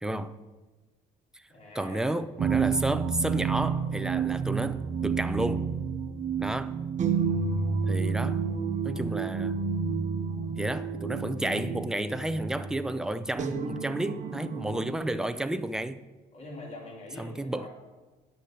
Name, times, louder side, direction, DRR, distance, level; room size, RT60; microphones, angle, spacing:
voice 1, 0.0-0.3 1.8-5.7 6.4-6.8 7.9-8.4 8.8-9.6 10.5-16.0 17.2-17.7, right 1 dB, 5° right, 0.6 m, -31 dB
voice 2, 1.5-2.1 2.4-2.7 8.1-8.3 16.3-17.7, left 2 dB, 40° left, 3.7 m, -45 dB
sound 1, 2.4-14.9, right 6 dB, 45° right, 1.2 m, -30 dB
9.7 x 6.6 x 8.7 m
cardioid pair, 110°, 17 cm